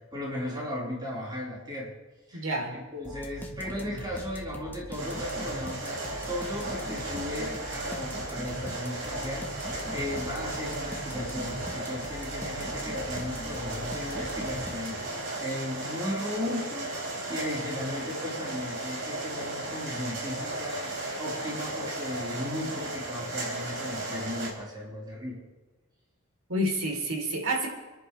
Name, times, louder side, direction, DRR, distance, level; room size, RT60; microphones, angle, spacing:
voice 1, 0.1-1.9 2.3-2.5 2.7-25.4, left 1 dB, 20° right, -5 dB, 4.7 m, -36 dB
voice 2, 2.3-2.8 26.5-27.7, right 1 dB, 85° right, 0 dB, 3.6 m, -29 dB
sound 1, 3.0-15.3, equal, 10° left, 1.5 m, -41 dB
sound 2, 5.0-24.5, right 2 dB, 65° right, 4.2 m, -35 dB
30.0 x 11.0 x 3.4 m, 1.2 s
head